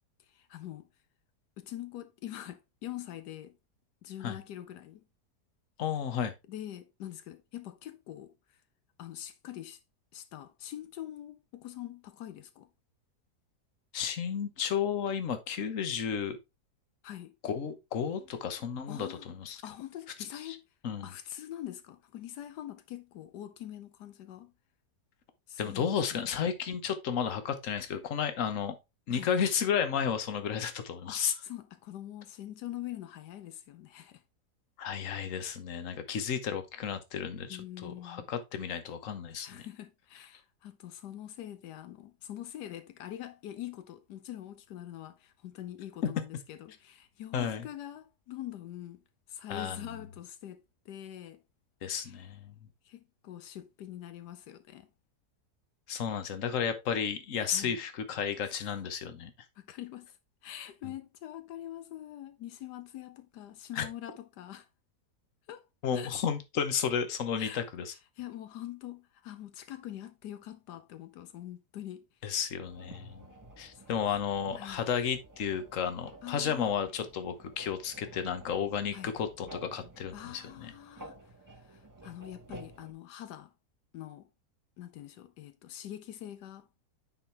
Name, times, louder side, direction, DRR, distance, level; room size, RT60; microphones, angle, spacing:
voice 1, 0.2-0.9 1.6-3.6 4.0-5.0 6.5-8.6 9.0-9.8 10.1-12.7 17.0-17.4 18.9-19.3 19.6-20.6 21.0-24.5 25.5-26.0 29.1-29.3 31.1-34.2 37.5-38.3 39.4-51.4 52.0-52.3 52.8-54.9 57.5-57.8 58.4-58.6 59.6-60.2 60.4-64.7 65.5-65.7 65.9-66.1 67.4-67.6 68.2-72.1 73.7-73.9 74.5-74.8 76.2-76.7 78.9-79.1 80.1-81.2 81.5-83.5 83.9-84.3 84.8-86.7, left 12 dB, 85° left, 1.3 m, -44 dB
voice 2, 5.8-6.3 13.9-16.4 17.4-19.6 20.4-20.6 20.8-21.1 25.6-28.7 29.1-31.3 34.8-39.7 47.3-47.7 49.5-49.9 51.8-52.5 55.9-59.3 63.7-63.9 65.8-67.9 72.2-73.3 73.6-80.7, left 7 dB, 55° left, 1.4 m, -33 dB
sound 1, 72.6-82.9, right 1 dB, 15° right, 0.7 m, -52 dB
9.7 x 4.4 x 3.3 m
omnidirectional pair, 1.7 m